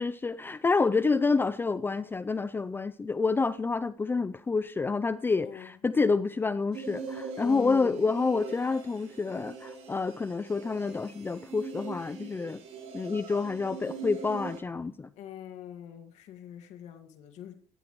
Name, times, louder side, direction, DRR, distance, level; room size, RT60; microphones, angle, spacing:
voice 1, 0.0-12.6 12.9-15.1, left 4 dB, 20° left, 14 dB, 0.5 m, -28 dB
sound 1, 6.7-14.6, right 5 dB, 60° right, 3.8 m, -42 dB
voice 2, 7.4-8.1 15.2-17.6, left 10 dB, 75° left, 6 dB, 2.0 m, -42 dB
15.5 x 14.5 x 3.1 m, 0.43 s
cardioid pair, 120°, 12 cm